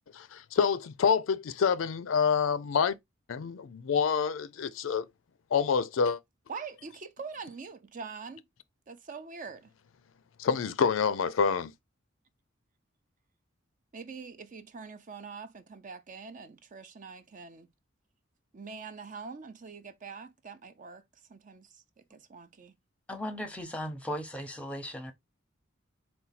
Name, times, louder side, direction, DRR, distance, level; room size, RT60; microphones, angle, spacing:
voice 1, 0.1-2.9 3.3-5.1 5.5-6.2 10.4-11.7, left 6 dB, 75° left, 0.4 m, -27 dB
voice 2, 6.5-8.4 8.9-9.7 13.9-17.7 18.5-21.0 21.3-21.8 22.1-22.7, right 5 dB, 40° right, 0.5 m, -44 dB
voice 3, 23.1-25.1, equal, 5° left, 0.8 m, -37 dB
4.1 x 2.2 x 4.0 m
head